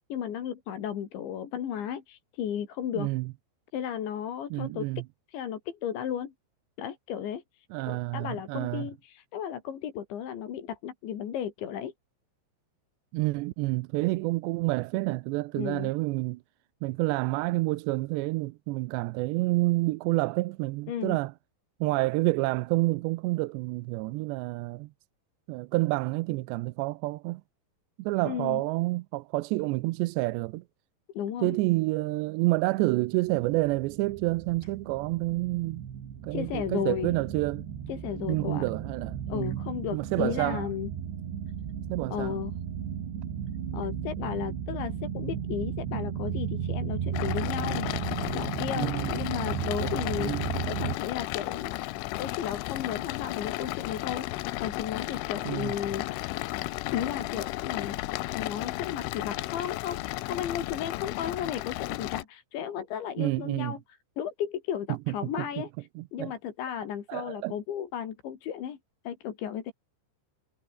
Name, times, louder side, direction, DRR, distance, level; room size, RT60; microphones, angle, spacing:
voice 1, 0.1-3.1 3.7-4.9 5.3-6.3 6.8-11.9 15.6-15.9 20.9-21.2 28.3-28.6 31.1-31.6 36.3-37.2 37.9-38.6 39.3-40.9 42.1-42.5 43.7-47.9 48.3-51.8 52.2-56.3 56.9-58.0 58.3-63.8 64.2-65.7 66.1-68.8 69.0-69.7, left 9 dB, 70° left, 5.0 m, -34 dB
voice 2, 3.0-3.3 4.5-5.0 7.7-8.9 13.1-16.4 16.8-21.3 21.8-24.9 25.5-27.4 28.0-30.6 31.4-35.8 36.2-37.6 38.3-39.6 39.9-40.7 41.9-42.4 45.9-46.0 48.8-49.2 50.2-50.5 55.5-55.7 63.2-63.8 64.9-65.5 66.0-66.3 67.1-67.5, right 21 dB, 85° right, 2.6 m, -29 dB
sound 1, 33.3-51.0, right 8 dB, 65° right, 5.3 m, -35 dB
sound 2, 47.1-62.2, left 19 dB, 85° left, 3.4 m, -34 dB
omnidirectional pair, 5.5 m